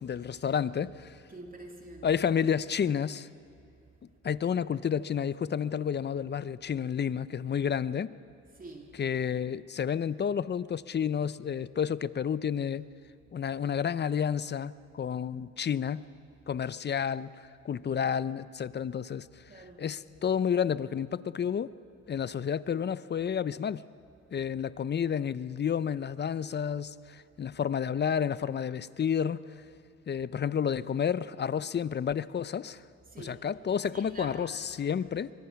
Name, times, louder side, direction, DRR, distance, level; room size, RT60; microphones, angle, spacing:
voice 1, 0.0-1.2 2.0-3.3 4.2-8.1 9.0-12.8 13.3-16.0 16.5-17.3 17.6-21.7 22.1-23.8 24.3-29.5 30.1-32.8 33.2-35.3, left 8 dB, 35° left, 0.6 m, -30 dB
voice 2, 1.3-2.1 8.5-9.0 19.5-19.8 33.1-33.4 33.9-34.5, right 2 dB, 30° right, 3.2 m, -46 dB
24.0 x 22.0 x 5.8 m
cardioid pair, 90°, 30 cm